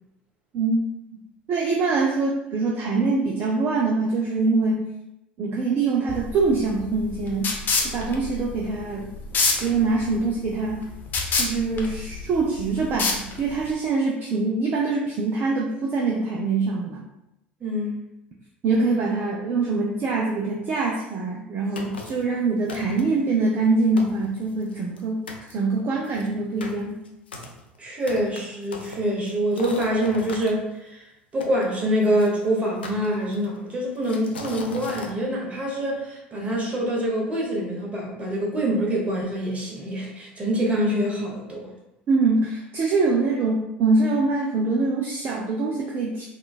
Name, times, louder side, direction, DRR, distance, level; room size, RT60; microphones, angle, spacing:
voice 1, 1.5-4.8 5.4-7.5 7.8-9.1 9.6-10.9 11.3-17.0 18.6-25.2 25.5-27.0 42.1-46.3, right 3 dB, 40° right, -2 dB, 0.4 m, -24 dB
sound 1, 6.1-13.7, left 4 dB, 35° left, 0.6 m, -28 dB
voice 2, 17.6-18.0 27.8-31.0 31.3-41.7, equal, 25° right, -2 dB, 1.0 m, -25 dB
sound 2, 21.8-22.3 22.7-23.2 23.7-23.8 24.0-25.0 25.3-25.5 26.0-30.5 31.4-32.3 32.8-33.6 34.0-35.1, left 3 dB, 75° left, 0.4 m, -39 dB
3.7 x 2.3 x 2.3 m, 0.89 s
figure-of-eight pair, 70°, 6 cm